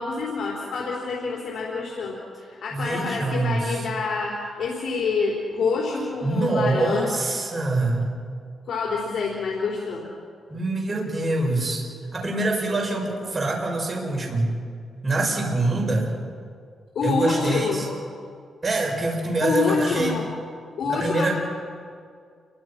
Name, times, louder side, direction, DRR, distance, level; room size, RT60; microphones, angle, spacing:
voice 1, 0.0-7.1 8.7-10.1 16.9-17.8 19.4-20.3 20.8-21.3, left 4 dB, 70° left, -3 dB, 4.1 m, -27 dB
voice 2, 2.7-3.8 6.2-8.1 10.5-11.8 12.1-14.5 15.0-16.1 17.0-17.9 18.6-20.1 20.8-21.3, right 2 dB, 30° right, -1 dB, 6.4 m, -24 dB
29.5 x 23.0 x 6.1 m, 2.2 s
cardioid pair, 120°, 0 cm